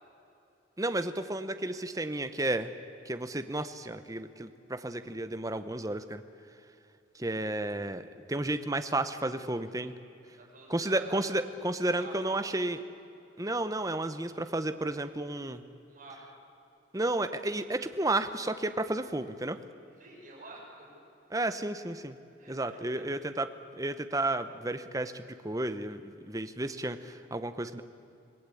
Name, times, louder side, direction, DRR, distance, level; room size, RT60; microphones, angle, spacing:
voice 1, 0.8-2.7 3.1-6.2 7.1-9.9 10.7-12.8 13.4-15.6 16.9-19.6 21.3-22.1 22.5-27.8, right 2 dB, 15° right, 9 dB, 0.9 m, -32 dB
voice 2, 10.4-11.3 11.8-12.1 12.4-12.6 15.9-16.2 20.0-21.0 22.4-23.1, right 2 dB, 40° right, -2 dB, 6.5 m, -49 dB
26.0 x 19.0 x 8.5 m, 2.8 s
head